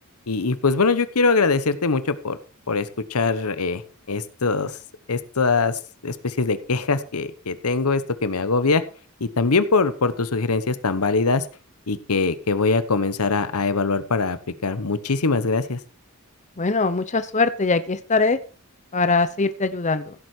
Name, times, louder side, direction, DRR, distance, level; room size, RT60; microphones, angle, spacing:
voice 1, 0.3-2.4 2.7-3.8 4.1-4.8 5.1-8.8 9.2-11.4 11.9-14.4 14.6-15.8, left 4 dB, 85° left, 13 dB, 1.1 m, -22 dB
voice 2, 16.6-18.4 18.9-20.1, left 3 dB, 35° left, 12 dB, 0.8 m, -22 dB
16.0 x 8.0 x 4.5 m, 0.36 s
head